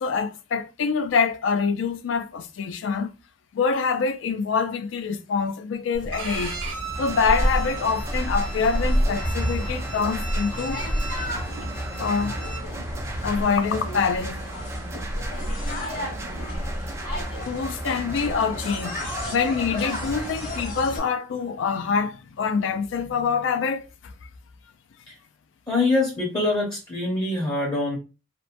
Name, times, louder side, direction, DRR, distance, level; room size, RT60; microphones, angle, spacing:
voice 1, 0.0-3.1 3.5-6.5 7.0-10.8 12.0-12.3 13.2-14.4 17.5-24.1, left 5 dB, 75° left, 0.3 m, -25 dB
sound 1, 5.9-21.0, equal, 45° left, 1.0 m, -30 dB
Bowed string instrument, 6.1-12.6, right 4 dB, 70° right, 0.8 m, -38 dB
sound 2, 6.9-20.6, right 2 dB, 15° right, 0.3 m, -39 dB
voice 2, 25.7-28.0, left 2 dB, 20° left, 0.6 m, -24 dB
2.8 x 2.1 x 2.5 m
head